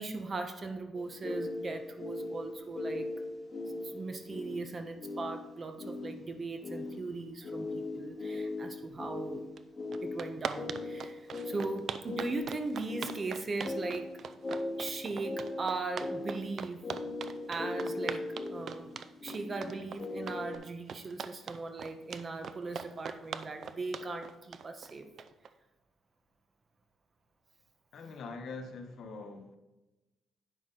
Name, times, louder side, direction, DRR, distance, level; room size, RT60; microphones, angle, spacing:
voice 1, 0.0-3.1 3.8-9.4 10.0-14.1 14.8-16.8 17.5-18.9 19.2-25.1, right 3 dB, 35° right, 1.1 m, -39 dB
sound 1, 0.9-20.6, left 2 dB, 25° left, 2.3 m, -40 dB
sound 2, 9.6-9.7 9.9-25.5, right 7 dB, 60° right, 0.5 m, -41 dB
voice 2, 27.9-29.5, left 3 dB, 65° left, 1.1 m, -43 dB
9.3 x 6.2 x 3.9 m
cardioid pair, 90°, 0 cm